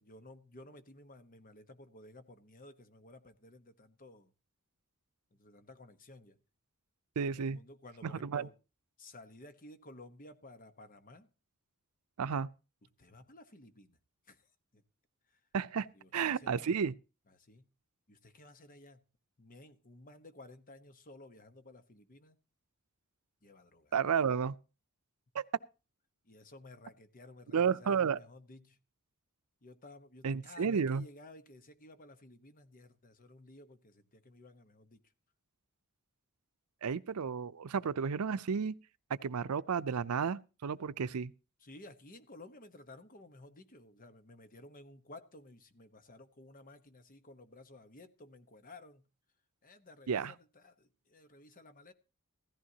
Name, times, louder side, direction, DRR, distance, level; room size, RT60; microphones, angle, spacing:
voice 1, 0.0-4.3 5.3-6.4 7.3-8.5 9.0-11.3 12.8-14.0 14.3-14.5 14.7-14.8 15.9-16.7 17.3-17.7 18.1-19.0 19.4-22.4 23.4-23.9 26.2-28.8 29.6-35.0 41.6-49.0 49.6-51.9, left 2 dB, 40° left, 1.1 m, -55 dB
voice 2, 7.2-7.6 8.0-8.5 12.2-12.5 15.5-15.9 16.1-16.9 23.9-24.6 25.3-25.4 27.5-28.2 30.2-31.1 36.8-38.8 39.1-41.3 50.1-50.3, right 6 dB, 90° right, 0.5 m, -32 dB
16.0 x 14.0 x 2.9 m
head